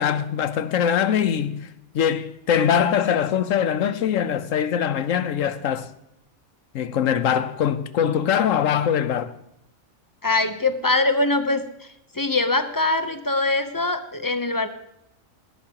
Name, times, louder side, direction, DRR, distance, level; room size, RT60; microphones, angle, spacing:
voice 1, 0.0-1.7 1.9-5.9 6.7-9.3, left 8 dB, 85° left, 1.2 m, -22 dB
voice 2, 10.2-11.6 12.1-14.7, left 2 dB, 20° left, 0.6 m, -22 dB
18.0 x 13.0 x 2.9 m
omnidirectional pair, 1.3 m